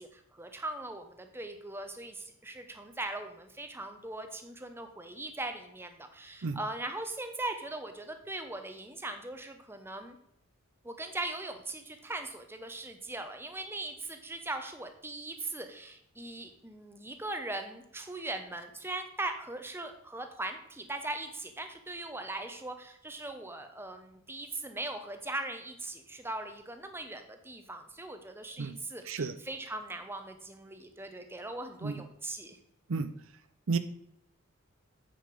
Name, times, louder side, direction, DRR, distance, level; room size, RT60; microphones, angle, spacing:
voice 1, 0.0-10.2 10.8-32.6, right 2 dB, 10° right, 6 dB, 0.9 m, -40 dB
voice 2, 6.4-6.6 28.6-28.8 29.1-29.3 31.8-32.0 32.9-33.1 33.7-33.8, right 4 dB, 70° right, 11 dB, 0.6 m, -31 dB
8.9 x 5.2 x 5.3 m, 0.74 s
head